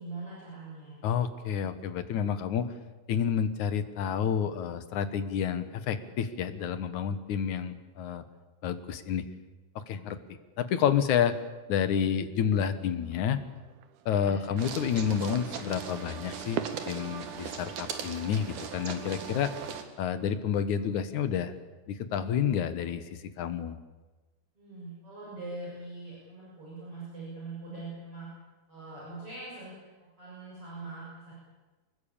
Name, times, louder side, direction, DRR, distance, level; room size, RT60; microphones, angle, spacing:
voice 1, 0.0-1.0 14.1-14.4 24.6-28.3 28.7-29.8 30.2-31.3, right 3 dB, 35° right, -6 dB, 7.8 m, -42 dB
voice 2, 1.0-2.7 3.1-8.2 8.6-9.3 9.9-10.2 10.6-11.3 11.7-13.4 14.1-19.5 20.0-21.5 21.9-23.8, left 8 dB, 65° left, 11 dB, 2.3 m, -29 dB
sound 1, 13.0-18.7, right 11 dB, 85° right, 3.0 m, -44 dB
sound 2, 14.6-19.8, right 7 dB, 60° right, 3.3 m, -39 dB
25.0 x 21.0 x 8.7 m, 1.2 s
omnidirectional pair, 4.4 m